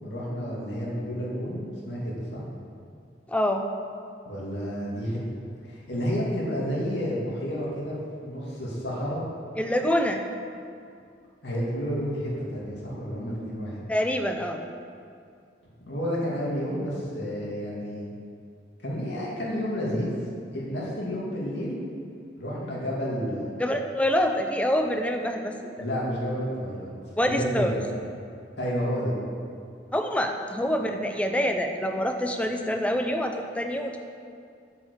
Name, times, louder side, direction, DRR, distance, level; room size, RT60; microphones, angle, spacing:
voice 1, 0.0-2.4 4.2-5.2 5.6-8.0 8.2-9.2 11.4-13.8 15.8-18.1 18.8-20.1 20.5-21.8 22.4-23.5 25.8-27.8 28.6-29.1, equal, 70° left, -5 dB, 2.6 m, -30 dB
voice 2, 3.3-3.7 9.6-10.2 13.9-14.6 23.6-25.7 27.2-27.7 29.9-34.0, equal, 5° left, 4 dB, 0.5 m, -26 dB
8.9 x 5.8 x 6.9 m, 2.4 s
head